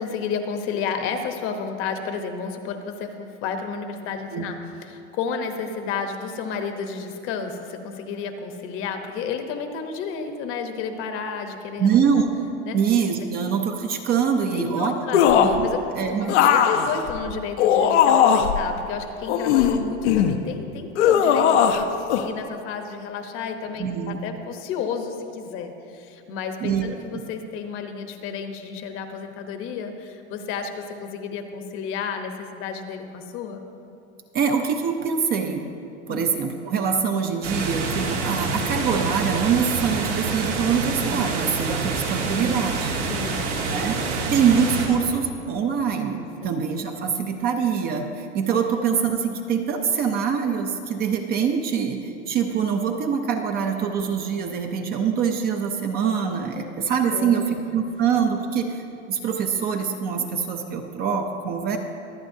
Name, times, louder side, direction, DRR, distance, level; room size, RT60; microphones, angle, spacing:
voice 1, 0.0-12.0 12.6-12.8 14.5-15.2 15.6-15.8 16.1-33.6 36.1-36.3 43.1-43.6 44.2-44.3 46.4-46.5 57.1-57.7, left 6 dB, 35° left, 6 dB, 0.9 m, -32 dB
voice 2, 11.8-12.3 12.7-16.4 23.8-24.2 26.6-26.9 27.1-27.2 34.3-35.7 36.1-42.9 43.7-61.8, right 6 dB, 25° right, 4 dB, 0.6 m, -24 dB
sound 1, 15.1-15.6 16.3-18.6 19.3-20.4 21.0-21.8 22.1-22.3, left 8 dB, 80° left, 0.9 m, -18 dB
sound 2, 37.4-44.9, right 3 dB, 85° right, 2.4 m, -27 dB
23.0 x 8.5 x 2.7 m, 2.6 s
supercardioid pair, 150°, 35 cm